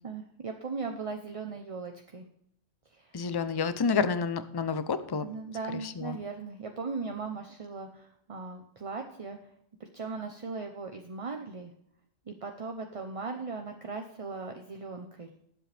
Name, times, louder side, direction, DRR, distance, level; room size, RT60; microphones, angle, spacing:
voice 1, 0.0-2.3 2.9-3.2 5.2-9.4 9.8-11.7 12.3-15.3, right 4 dB, 30° right, 4 dB, 0.7 m, -38 dB
voice 2, 3.1-5.3 5.7-6.2, left 5 dB, 35° left, 12 dB, 0.4 m, -29 dB
19.0 x 7.7 x 3.4 m, 0.72 s
omnidirectional pair, 1.4 m